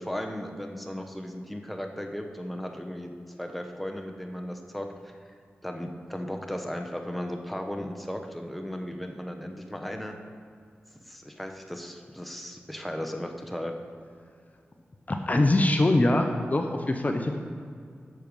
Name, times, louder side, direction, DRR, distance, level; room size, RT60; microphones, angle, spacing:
voice 1, 0.0-3.1 3.4-5.2 5.6-10.1 11.0-13.7, equal, ahead, 3 dB, 0.9 m, -36 dB
voice 2, 15.1-17.4, left 2 dB, 35° left, 4 dB, 0.7 m, -23 dB
7.6 x 6.7 x 5.2 m, 2.2 s
cardioid pair, 50°, 4 cm